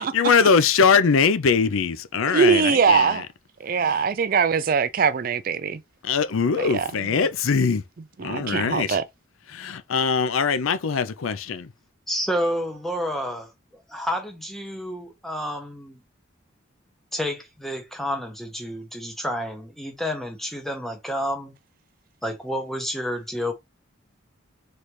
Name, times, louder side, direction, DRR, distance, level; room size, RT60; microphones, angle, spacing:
voice 1, 0.0-3.1 6.0-7.8 8.2-9.0 9.5-11.7, left 5 dB, 85° left, 0.5 m, -21 dB
voice 2, 2.3-3.2 3.6-5.8 6.6-7.1 8.2-9.1, right 6 dB, 45° right, 0.4 m, -22 dB
voice 3, 12.1-16.0 17.1-21.5 22.2-23.5, equal, ahead, 0.9 m, -30 dB
4.1 x 3.3 x 3.1 m
head